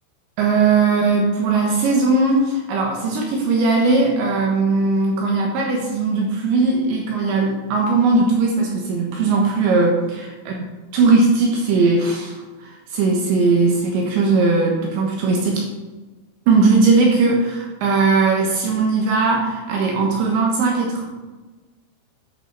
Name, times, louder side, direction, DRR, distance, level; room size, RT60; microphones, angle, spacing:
voice 1, 0.4-10.0 10.5-10.6 10.9-15.6 16.5-21.0, right 3 dB, 70° right, 0 dB, 3.3 m, -18 dB
12.0 x 9.3 x 4.0 m, 1.2 s
omnidirectional pair, 6.0 m